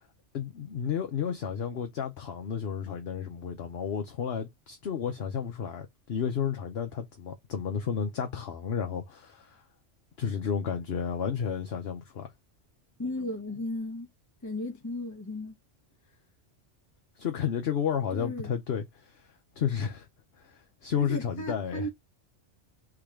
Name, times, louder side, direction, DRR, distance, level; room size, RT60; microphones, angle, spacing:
voice 1, 0.3-9.6 10.2-12.3 17.2-19.3 19.6-20.1 20.4-21.9, left 7 dB, 60° left, 1.0 m, -32 dB
voice 2, 13.0-14.1 14.4-15.6 18.1-18.5 21.0-21.9, left 1 dB, 15° left, 0.9 m, -35 dB
3.7 x 2.9 x 4.8 m
omnidirectional pair, 1.2 m